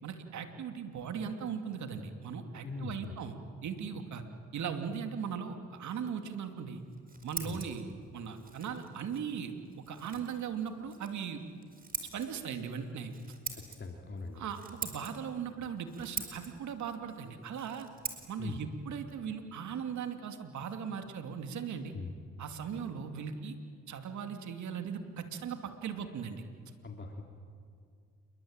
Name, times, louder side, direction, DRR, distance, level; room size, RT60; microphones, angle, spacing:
voice 1, 0.0-3.4 3.6-4.2 4.5-6.8 7.2-7.9 8.1-11.4 12.1-13.1 14.3-17.9 18.3-21.9 22.4-23.6 23.9-26.4, right 7 dB, 70° right, 6 dB, 2.7 m, -38 dB
voice 2, 2.6-3.2 7.4-7.7 13.5-14.4 18.4-18.6 21.9-22.1 26.8-27.2, left 4 dB, 35° left, 2 dB, 2.9 m, -41 dB
Scissors, 6.8-20.3, right 4 dB, 30° right, 4.8 m, -46 dB
28.5 x 23.0 x 9.0 m, 2.2 s
cardioid pair, 90°, 30 cm